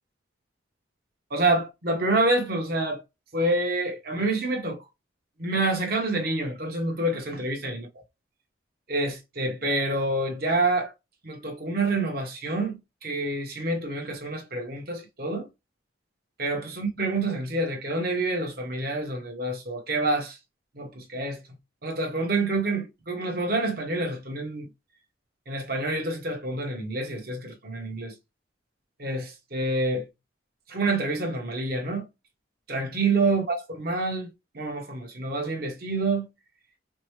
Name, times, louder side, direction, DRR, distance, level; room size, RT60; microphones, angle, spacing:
voice 1, 1.3-3.0 3.3-4.8 5.4-7.9 8.9-10.9 11.2-15.5 16.4-20.4 20.7-21.4 21.8-24.7 25.5-28.1 29.0-30.0 30.7-32.0 32.7-34.3 34.5-36.2, right 2 dB, 55° right, 1.3 m, -27 dB
5.1 x 2.1 x 3.2 m
head